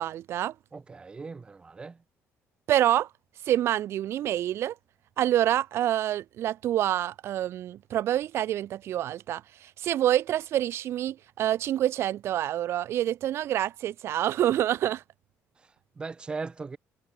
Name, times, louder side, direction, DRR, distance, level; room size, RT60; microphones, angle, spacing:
voice 1, 0.0-0.5 2.7-3.1 3.4-4.8 5.2-15.0, right 12 dB, 55° right, 2.9 m, -27 dB
voice 2, 0.7-2.0 16.0-16.8, right 4 dB, 20° right, 6.0 m, -38 dB
cardioid pair, 180°, 5 cm